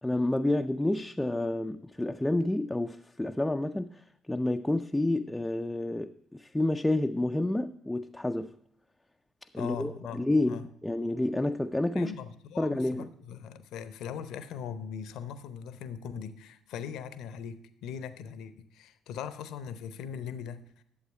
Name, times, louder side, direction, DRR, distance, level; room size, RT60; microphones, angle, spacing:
voice 1, 0.0-8.5 9.5-12.1 12.6-13.1, left 1 dB, 10° left, 0.4 m, -29 dB
voice 2, 9.5-10.7 11.9-20.8, left 7 dB, 65° left, 0.6 m, -40 dB
11.0 x 7.8 x 4.3 m
figure-of-eight pair, 45°, 0 cm